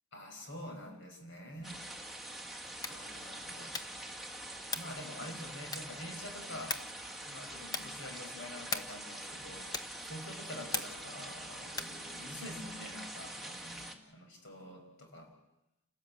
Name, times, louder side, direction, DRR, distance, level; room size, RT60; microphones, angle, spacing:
voice 1, 0.1-2.0 2.9-3.8 4.8-6.9 7.2-15.3, left 1 dB, 60° left, 4 dB, 5.3 m, -47 dB
sound 1, 1.6-13.9, right 1 dB, ahead, 1.8 m, -45 dB
sound 2, 2.7-3.1 3.7-4.1 4.7-5.0 5.7-6.1 6.7-7.0 7.7-8.0 8.7-9.1 9.7-10.0 10.7-11.1 11.7-12.0, left 3 dB, 20° left, 1.1 m, -39 dB
29.5 x 13.5 x 8.8 m, 0.92 s
head